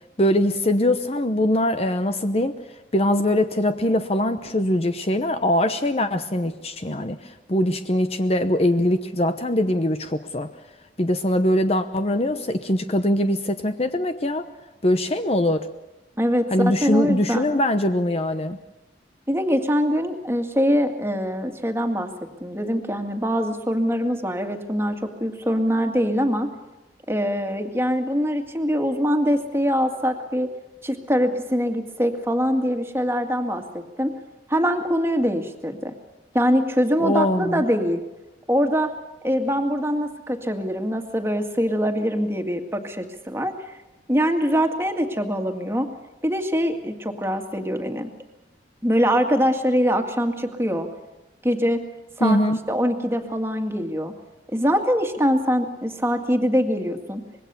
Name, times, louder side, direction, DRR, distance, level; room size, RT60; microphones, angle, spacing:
voice 1, 0.2-2.6 2.9-10.5 11.0-14.5 14.8-15.7 16.5-18.6 37.0-37.6 52.2-52.6, left 1 dB, 35° left, 9 dB, 0.9 m, -22 dB
voice 2, 16.2-17.5 19.3-22.1 22.4-26.5 27.1-30.5 30.8-34.1 34.5-35.9 36.3-38.0 38.5-38.9 39.2-43.8 44.1-45.9 46.2-48.1 48.8-50.9 51.4-51.8 52.2-52.4 52.7-54.1 54.5-57.2, equal, 15° right, 4 dB, 2.0 m, -23 dB
25.0 x 21.5 x 7.0 m, 1.0 s
head